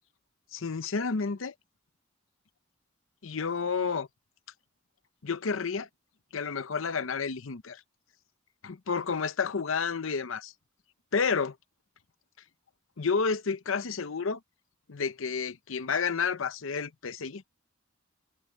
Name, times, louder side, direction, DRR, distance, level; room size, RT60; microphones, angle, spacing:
voice 1, 0.5-1.5 3.2-4.1 5.2-5.9 6.3-7.8 8.6-10.5 11.1-11.5 13.0-14.4 14.9-17.4, left 5 dB, 75° left, 0.7 m, -30 dB
head